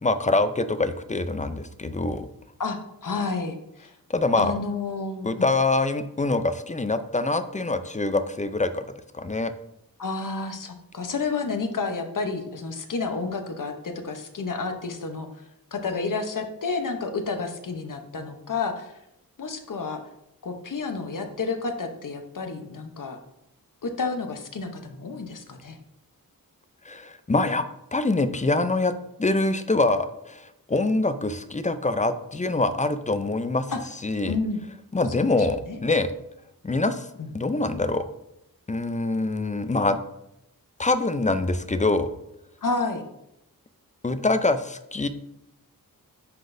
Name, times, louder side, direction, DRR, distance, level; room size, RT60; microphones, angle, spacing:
voice 1, 0.0-2.3 4.1-4.6 5.2-8.8 9.1-9.5 26.9-27.6 27.9-33.7 34.0-34.4 34.9-36.1 36.6-37.1 37.3-38.0 38.7-40.0 40.8-42.1 44.0-45.1, left 2 dB, 20° left, 11 dB, 0.4 m, -24 dB
voice 2, 2.6-3.9 4.4-5.3 10.0-15.3 15.7-18.9 19.4-20.0 20.4-23.2 23.8-25.8 33.7-33.8 34.3-34.6 35.2-35.8 37.2-37.3 42.6-43.0, left 4 dB, 60° left, 6 dB, 0.8 m, -30 dB
9.9 x 3.9 x 2.6 m, 0.84 s
wide cardioid pair, 90°, 36 cm